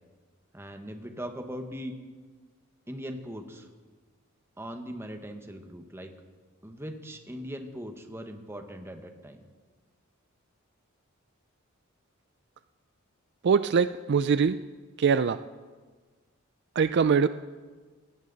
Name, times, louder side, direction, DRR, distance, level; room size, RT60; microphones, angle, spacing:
voice 1, 0.5-1.9 2.9-3.7 4.6-6.1 6.6-9.4, equal, 10° right, 6 dB, 1.2 m, -40 dB
voice 2, 13.4-14.6 15.0-15.4 16.8-17.3, right 6 dB, 55° right, 13 dB, 0.4 m, -23 dB
19.5 x 17.0 x 4.0 m, 1.4 s
head